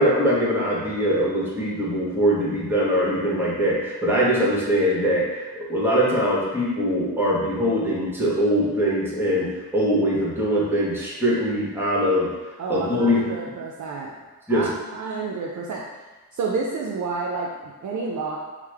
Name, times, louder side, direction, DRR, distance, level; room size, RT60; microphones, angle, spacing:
voice 1, 0.0-12.3 12.7-13.2 14.5-14.7, equal, 5° right, -6 dB, 1.0 m, -22 dB
voice 2, 12.6-14.1 14.5-15.8 16.3-18.4, right 4 dB, 50° right, -2 dB, 0.4 m, -29 dB
3.1 x 2.0 x 3.3 m, 1.2 s
cardioid pair, 65°, 40 cm